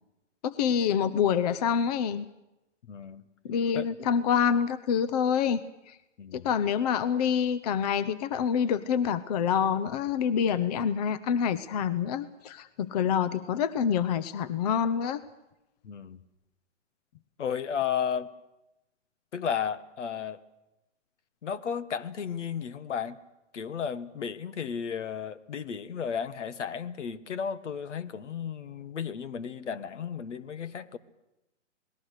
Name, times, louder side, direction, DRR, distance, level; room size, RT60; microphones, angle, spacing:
voice 1, 0.4-2.3 3.4-6.0 6.3-15.2, left 7 dB, 35° left, 15 dB, 0.7 m, -27 dB
voice 2, 2.9-3.2 3.7-3.9 6.2-6.5 15.8-16.2 17.4-18.3 19.3-20.4 21.4-23.2 23.5-31.0, left 7 dB, 70° left, 14 dB, 1.6 m, -33 dB
28.0 x 19.5 x 6.6 m, 0.95 s
hypercardioid pair, 150°, 37 cm